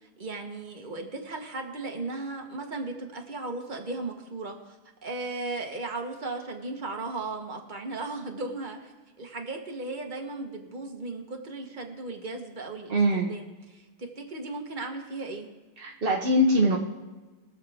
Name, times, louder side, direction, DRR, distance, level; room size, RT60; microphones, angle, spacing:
voice 1, 0.2-4.8 5.0-15.5, right 3 dB, 30° right, 3 dB, 1.0 m, -36 dB
voice 2, 12.9-13.3 15.8-16.8, equal, 55° right, 0 dB, 0.6 m, -22 dB
22.0 x 7.4 x 3.5 m, 1.3 s
omnidirectional pair, 2.4 m